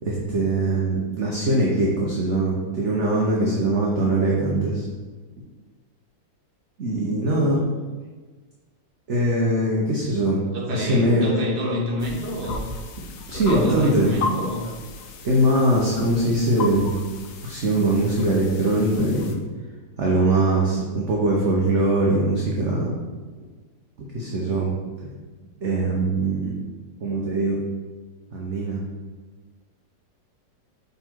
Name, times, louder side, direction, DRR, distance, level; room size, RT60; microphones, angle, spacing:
voice 1, 0.0-4.8 6.8-7.6 9.1-10.4 10.7-11.3 13.3-14.1 15.2-16.9 17.4-19.3 20.0-22.9 24.0-24.7 25.6-26.5 27.0-27.6 28.3-28.8, right 1 dB, 50° right, -3 dB, 1.0 m, -22 dB
voice 2, 10.5-12.7 13.3-14.7, equal, 35° right, -2 dB, 1.1 m, -28 dB
sound 1, 12.0-19.4, left 4 dB, 65° left, 0.8 m, -35 dB
5.9 x 4.0 x 4.5 m, 1.3 s
omnidirectional pair, 2.0 m